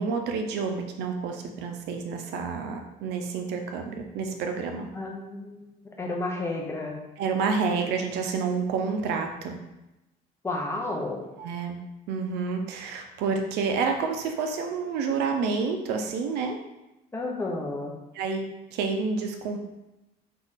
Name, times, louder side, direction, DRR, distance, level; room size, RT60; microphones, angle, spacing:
voice 1, 0.0-4.9 7.2-9.6 11.4-11.8 12.1-16.5 18.1-18.4 18.7-19.6, right 5 dB, 85° right, 4 dB, 0.6 m, -29 dB
voice 2, 4.9-7.0 10.4-11.2 17.1-17.9, left 2 dB, 15° left, 0 dB, 0.9 m, -32 dB
3.8 x 3.0 x 4.0 m, 0.97 s
cardioid pair, 110°, 17 cm